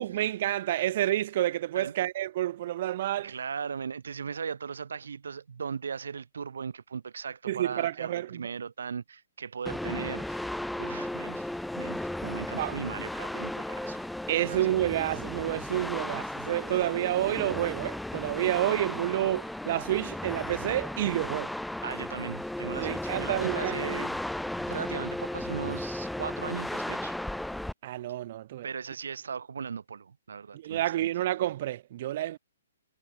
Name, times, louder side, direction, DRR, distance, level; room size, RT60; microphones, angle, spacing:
voice 1, 0.0-3.3 7.5-8.4 12.6-12.8 14.3-21.5 22.8-23.7 27.8-28.7 30.5-32.4, right 13 dB, 35° right, 0.4 m, -29 dB
voice 2, 3.2-14.1 14.4-14.7 21.8-27.2 28.6-31.1, right 6 dB, 80° right, 6.8 m, -38 dB
sound 1, 9.6-27.7, left 1 dB, ahead, 1.4 m, -35 dB
hypercardioid pair, 170°, 0 cm